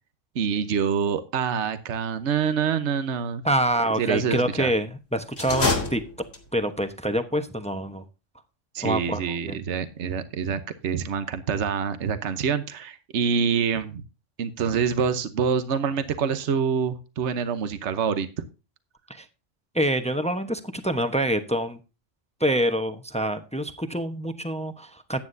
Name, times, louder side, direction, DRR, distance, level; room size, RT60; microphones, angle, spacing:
voice 1, 0.3-3.4 4.0-4.7 8.7-14.0 14.4-18.3, right 6 dB, 65° right, 11 dB, 1.2 m, -26 dB
voice 2, 3.4-6.0 6.5-8.0 8.8-9.6 19.1-19.3 19.7-21.8 22.4-25.2, right 1 dB, 5° left, 9 dB, 0.9 m, -26 dB
sound 1, 5.3-6.7, left 3 dB, 75° left, 2.8 m, -27 dB
14.5 x 9.5 x 2.7 m, 0.30 s
omnidirectional pair, 1.3 m